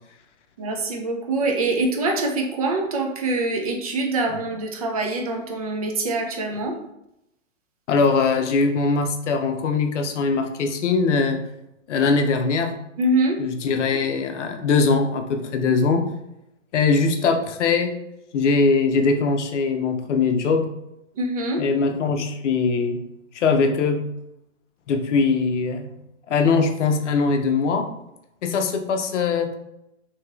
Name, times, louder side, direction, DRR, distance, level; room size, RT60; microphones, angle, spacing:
voice 1, 0.6-6.8 13.0-13.4 21.2-21.6, right 2 dB, 30° right, 2 dB, 0.4 m, -24 dB
voice 2, 7.9-11.4 11.9-12.7 13.4-16.0 16.7-17.9 18.3-20.7 21.6-23.0 23.3-24.0 24.9-25.9 26.3-27.9 28.4-29.5, left 4 dB, 60° left, 5 dB, 0.7 m, -21 dB
2.9 x 2.9 x 2.4 m, 0.85 s
hypercardioid pair, 140°, 40 cm